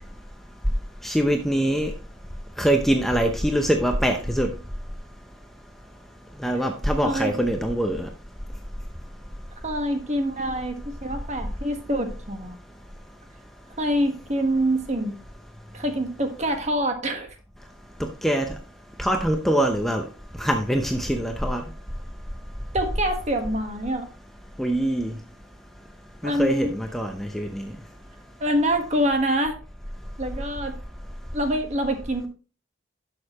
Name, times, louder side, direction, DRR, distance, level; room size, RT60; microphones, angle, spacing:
voice 1, 1.0-1.9 2.6-4.5 6.4-8.1 18.2-18.5 19.0-20.0 20.4-21.6 24.6-25.1 26.2-27.7, right 1 dB, ahead, 3 dB, 0.6 m, -23 dB
voice 2, 9.6-12.5 13.8-15.1 15.7-17.4 22.7-24.1 26.2-26.7 28.4-29.6 30.2-30.8 31.3-32.3, equal, 35° right, 5 dB, 1.4 m, -25 dB
11.0 x 6.6 x 3.0 m, 0.35 s
head